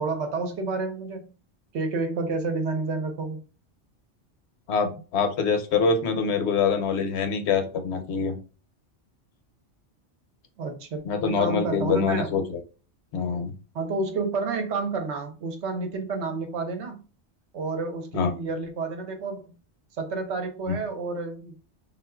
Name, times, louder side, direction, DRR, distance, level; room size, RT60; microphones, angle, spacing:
voice 1, 0.0-1.3 1.7-3.4 10.6-12.4 13.7-17.0 17.5-19.5 20.0-21.6, right 3 dB, 75° right, 5 dB, 1.0 m, -30 dB
voice 2, 4.7-8.4 11.1-12.4 13.1-13.5 18.1-18.3, left 5 dB, 75° left, 6 dB, 0.9 m, -24 dB
3.7 x 2.4 x 2.2 m, 0.35 s
omnidirectional pair, 1.2 m